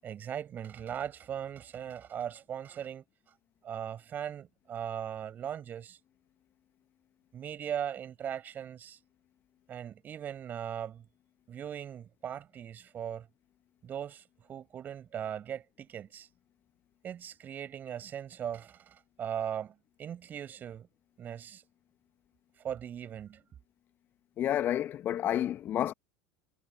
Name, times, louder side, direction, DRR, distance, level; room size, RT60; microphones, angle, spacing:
voice 1, 0.0-3.0 3.6-6.0 7.3-9.0 9.7-11.0 11.5-13.3 13.8-14.2 14.5-16.3 17.0-20.9 21.2-21.6 22.6-23.4, right 9 dB, 35° right, 7.3 m, -39 dB
voice 2, 24.4-25.9, left 11 dB, 35° left, 1.9 m, -30 dB
figure-of-eight pair, 75°, 6 cm